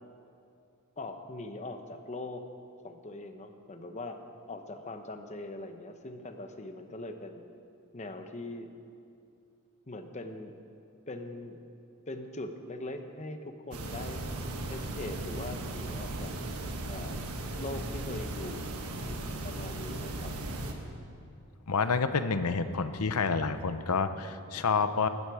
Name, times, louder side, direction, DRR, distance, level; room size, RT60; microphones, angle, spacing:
voice 1, 1.0-2.4 2.8-4.2 4.5-7.5 7.9-8.7 9.9-10.6 11.1-11.6 12.1-14.2 14.7-16.3 16.9-17.2 17.6-18.7 19.0-20.3, left 2 dB, 30° left, 7 dB, 0.9 m, -41 dB
sound 1, 13.7-20.7, right 2 dB, 85° right, 1.4 m, -37 dB
voice 2, 21.7-25.1, left 5 dB, 80° left, 11 dB, 0.7 m, -28 dB
15.5 x 12.5 x 4.9 m, 2.5 s
head